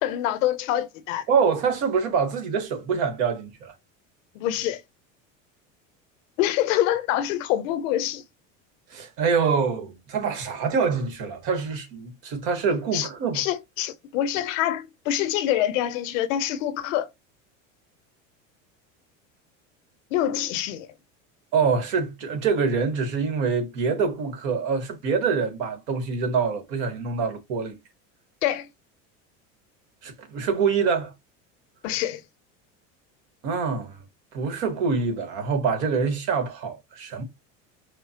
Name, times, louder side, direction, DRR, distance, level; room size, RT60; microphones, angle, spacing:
voice 1, 0.0-1.3 4.3-4.8 6.4-8.2 12.9-13.1 13.3-17.1 20.1-20.9 28.4-28.7 31.8-32.2, left 12 dB, 75° left, 0.7 m, -25 dB
voice 2, 1.3-3.7 8.9-13.4 21.5-27.8 30.0-31.1 33.4-34.0 34.3-37.2, right 5 dB, 70° right, 1.3 m, -25 dB
4.9 x 2.0 x 2.9 m
supercardioid pair, 95°, 39 cm